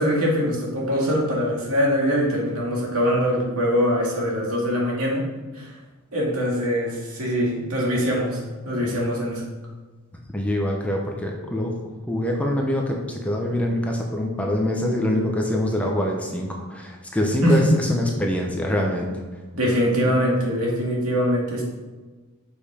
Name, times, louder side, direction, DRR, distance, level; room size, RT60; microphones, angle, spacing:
voice 1, 0.0-5.2 5.5-5.7 6.1-9.4 17.4-17.7 19.5-21.6, equal, 70° right, -3 dB, 2.3 m, -23 dB
voice 2, 10.3-11.7 12.1-19.1, left 1 dB, 5° left, 0 dB, 0.8 m, -24 dB
6.7 x 5.5 x 5.0 m, 1.3 s
head